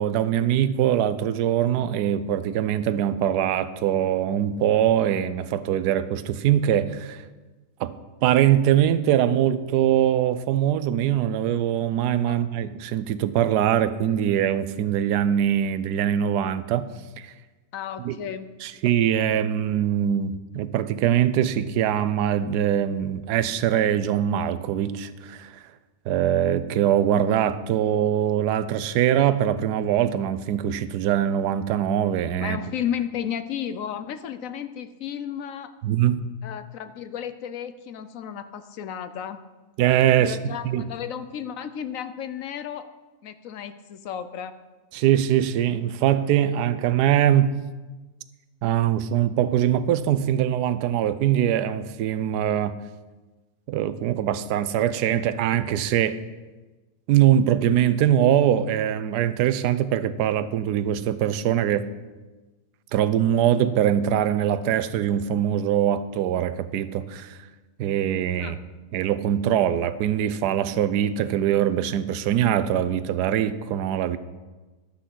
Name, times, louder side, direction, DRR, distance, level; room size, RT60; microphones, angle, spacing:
voice 1, 0.0-7.2 7.8-7.9 8.2-16.9 17.2-17.3 18.0-18.2 18.6-25.6 26.1-32.6 35.8-36.2 39.8-40.4 40.6-40.8 44.9-47.5 48.6-52.7 53.7-56.2 57.1-61.9 62.9-67.4 67.8-68.6 68.9-74.2, right 10 dB, 75° right, 13 dB, 1.2 m, -22 dB
voice 2, 17.7-18.5 32.4-35.7 36.4-39.4 40.2-42.9 43.2-44.6 68.4-68.6, left 9 dB, 65° left, 11 dB, 0.9 m, -33 dB
11.5 x 6.3 x 7.5 m, 1.2 s
omnidirectional pair, 1.8 m